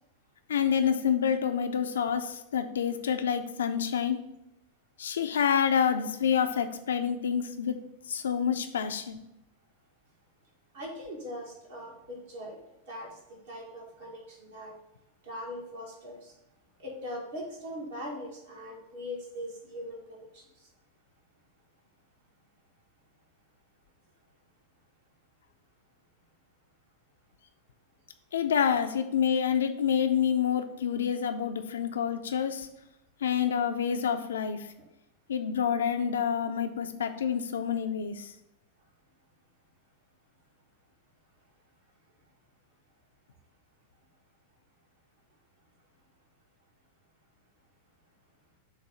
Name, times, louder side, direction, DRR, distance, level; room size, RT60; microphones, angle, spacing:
voice 1, 0.5-4.2 5.0-7.8 8.1-9.2 28.3-32.7 33.2-34.7 35.3-38.3, left 8 dB, 65° left, 8 dB, 0.5 m, -28 dB
voice 2, 10.7-12.6 12.9-13.1 13.5-14.7 15.2-16.3 16.8-20.4, equal, 60° right, -2 dB, 1.8 m, -40 dB
6.4 x 2.7 x 5.6 m, 0.83 s
figure-of-eight pair, 90°, 0 cm